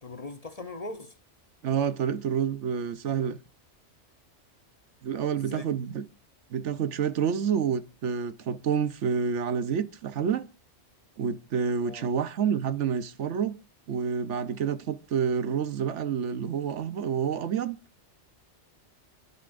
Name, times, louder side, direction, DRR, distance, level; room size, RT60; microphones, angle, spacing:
voice 1, 0.0-1.2 5.4-5.7 11.8-12.1, left 2 dB, 40° left, 0.7 m, -40 dB
voice 2, 1.6-3.4 5.0-6.0 6.5-10.5 11.2-13.6 13.9-17.8, right 7 dB, 80° right, 1.1 m, -28 dB
28.0 x 9.7 x 2.5 m
omnidirectional pair, 1.2 m